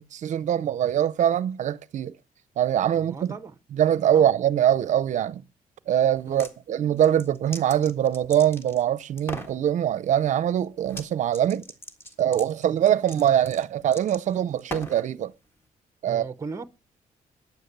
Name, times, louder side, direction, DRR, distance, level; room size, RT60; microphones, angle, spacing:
voice 1, 0.0-2.1 2.6-3.1 3.8-5.4 5.9-11.6 12.2-15.3 16.0-16.2, right 10 dB, 55° right, 0.6 m, -23 dB
voice 2, 2.9-3.6 4.1-4.3 6.3-6.5 16.1-16.7, right 4 dB, 20° right, 0.7 m, -37 dB
sound 1, 6.2-6.5 7.0-8.8 9.2-9.6 10.9-11.1 11.3-15.1, equal, 15° left, 1.6 m, -40 dB
14.0 x 9.6 x 6.7 m
cardioid pair, 165°, 15 cm